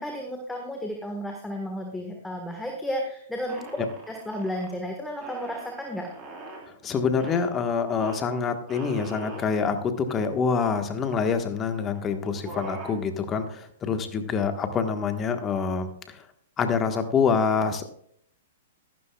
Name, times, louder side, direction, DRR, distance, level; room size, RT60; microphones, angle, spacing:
voice 1, 0.0-3.8 4.1-6.1, equal, 5° left, 2 dB, 1.5 m, -33 dB
sound 1, 3.5-4.7 5.2-6.7 7.2-7.5 8.0-8.2 8.7-9.5 10.1-10.2 10.4-11.2 11.8-12.0 12.2-13.0, right 2 dB, 25° right, 4.2 m, -41 dB
voice 2, 6.8-16.2 16.6-17.9, left 5 dB, 25° left, 7 dB, 1.4 m, -26 dB
14.0 x 12.0 x 2.4 m, 0.66 s
hypercardioid pair, 125°, 0 cm